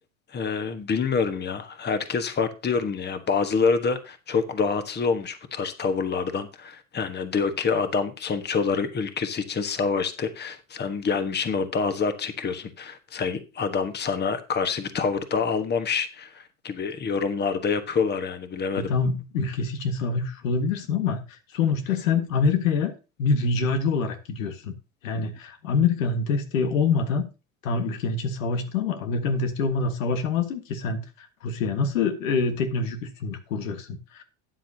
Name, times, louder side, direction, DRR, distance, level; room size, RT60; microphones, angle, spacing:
voice 1, 0.3-18.9 25.2-25.3, left 5 dB, 25° left, 9 dB, 1.3 m, -27 dB
voice 2, 18.8-22.9 23.2-24.7 25.0-27.3 27.6-34.2, left 4 dB, 85° left, 7 dB, 1.6 m, -26 dB
13.0 x 8.9 x 2.8 m, 0.30 s
hypercardioid pair, 90°, 39 cm